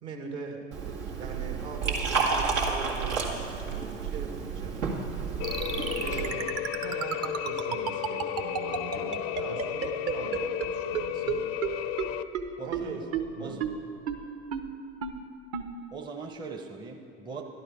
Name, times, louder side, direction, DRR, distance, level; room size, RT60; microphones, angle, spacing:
voice 1, 0.0-0.7 1.2-4.8 6.0-11.6 12.6-13.0 13.4-13.6, right 5 dB, 55° right, 3 dB, 1.8 m, -41 dB
Liquid, 0.7-6.3, right 5 dB, 75° right, 2.1 m, -31 dB
sound 1, 5.4-12.2, left 11 dB, 40° left, 0.5 m, -33 dB
sound 2, 5.4-10.7 10.9-11.0 11.3-11.4 11.6-11.7 12.0-12.1 12.3-12.4 12.7-12.8 13.1-13.2 13.6-13.7 14.1-14.2 14.5-14.6 15.0-15.1 15.5-15.6, right 8 dB, 40° right, 1.0 m, -30 dB
voice 2, 12.6-13.0 13.4-13.7 15.9-17.4, right 4 dB, 10° right, 2 dB, 0.7 m, -40 dB
12.0 x 12.0 x 4.8 m, 2.5 s
hypercardioid pair, 85°, 38 cm